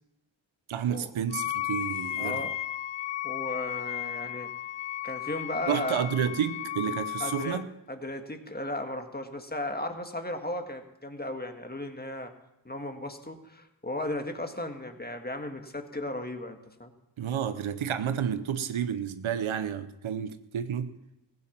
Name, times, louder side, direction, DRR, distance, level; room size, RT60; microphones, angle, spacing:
voice 1, 0.7-2.4 5.7-7.6 17.2-20.9, right 8 dB, 90° right, 0.8 m, -30 dB
Wind instrument woodwind instrument, 1.3-7.6, left 13 dB, 70° left, 0.5 m, -34 dB
voice 2, 2.2-2.6 3.2-4.5 5.0-6.1 7.2-12.3 12.7-16.9, left 1 dB, 20° left, 1.8 m, -35 dB
16.0 x 9.4 x 5.9 m
cardioid pair, 45°, 47 cm